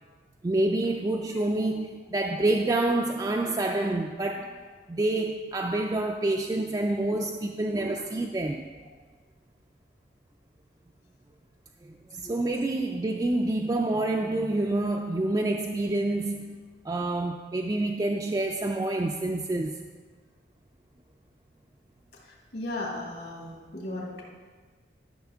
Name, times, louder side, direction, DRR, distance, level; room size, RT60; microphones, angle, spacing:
voice 1, 0.4-8.7 11.9-16.6 16.8-19.9, right 2 dB, 20° right, 2 dB, 0.3 m, -28 dB
voice 2, 22.5-24.2, left 1 dB, 65° left, -2 dB, 2.2 m, -35 dB
12.5 x 6.3 x 3.5 m, 1.4 s
head